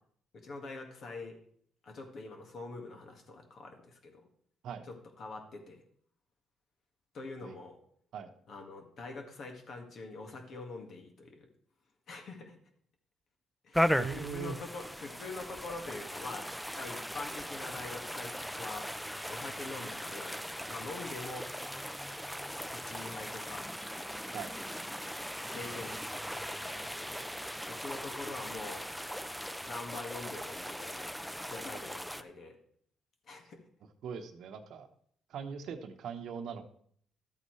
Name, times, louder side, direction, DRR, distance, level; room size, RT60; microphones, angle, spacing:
voice 1, 0.3-1.4 1.8-4.2 4.9-5.8 7.1-7.8 8.5-11.5 12.1-12.6 13.6-16.5 16.8-18.9 19.3-21.5 22.7-23.7 25.5-27.3 27.7-28.9 29.6-31.2 31.5-32.6 33.3-33.6, left 3 dB, 60° left, 3 dB, 1.8 m, -44 dB
sound 1, 13.7-32.2, equal, ahead, 0.5 m, -38 dB
voice 2, 13.9-14.6 24.3-24.6 34.0-34.9 35.3-36.6, right 6 dB, 75° right, 7 dB, 1.0 m, -40 dB
12.5 x 8.3 x 3.2 m, 0.63 s
cardioid pair, 90°, 0 cm